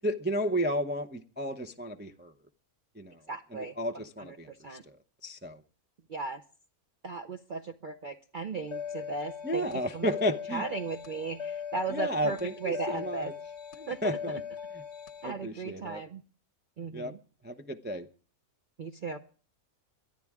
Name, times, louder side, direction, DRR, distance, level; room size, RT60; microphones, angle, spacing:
voice 1, 0.0-2.3 3.0-3.1 3.5-5.0 5.2-5.6 9.4-10.6 11.9-13.3 13.8-14.4 15.2-16.0 16.9-17.1 17.4-18.1, equal, 10° right, 0.5 m, -32 dB
voice 2, 3.3-3.8 4.2-4.8 6.1-6.4 7.0-10.1 10.5-13.3 13.9-14.2 15.2-16.2 16.8-17.2 18.8-19.2, right 4 dB, 45° right, 0.8 m, -37 dB
sound 1, 8.7-15.3, left 7 dB, 55° left, 1.1 m, -40 dB
23.0 x 14.0 x 3.6 m
omnidirectional pair, 1.5 m